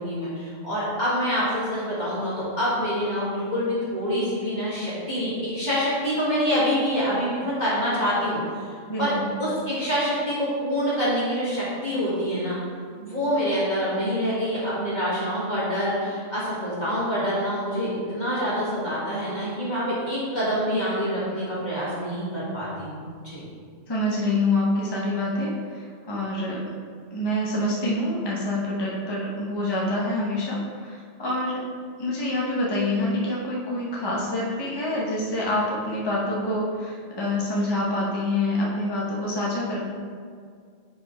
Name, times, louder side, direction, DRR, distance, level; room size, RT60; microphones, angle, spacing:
voice 1, 0.0-8.4 9.0-9.1 9.4-12.6 13.0-23.4, equal, 40° left, -10 dB, 1.9 m, -26 dB
voice 2, 8.9-9.3 23.9-26.6 27.1-31.6 32.0-39.8, left 1 dB, 25° left, -5 dB, 0.9 m, -26 dB
5.7 x 5.1 x 4.5 m, 2.1 s
omnidirectional pair, 1.2 m